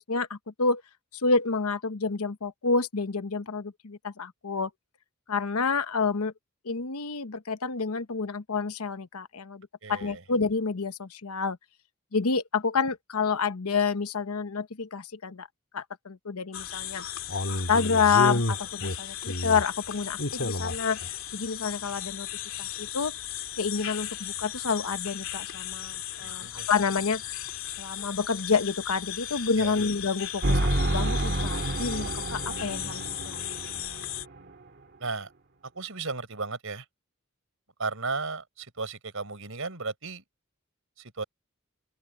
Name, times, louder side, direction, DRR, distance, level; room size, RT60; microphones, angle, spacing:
voice 1, 0.1-0.8 1.1-4.7 5.3-6.3 6.6-11.6 12.1-15.5 15.7-17.0 17.5-22.3 22.6-23.1 23.6-27.4 27.8-33.4, left 5 dB, 85° left, 1.0 m, -29 dB
voice 2, 9.8-10.2 26.2-26.7 29.6-29.8 35.0-35.3 35.7-36.8 37.8-40.2 41.0-41.2, right 4 dB, 65° right, 4.8 m, -35 dB
sound 1, 16.5-34.2, left 5 dB, 65° left, 2.7 m, -34 dB
sound 2, 30.4-34.5, right 1 dB, 50° right, 2.0 m, -29 dB
open air
head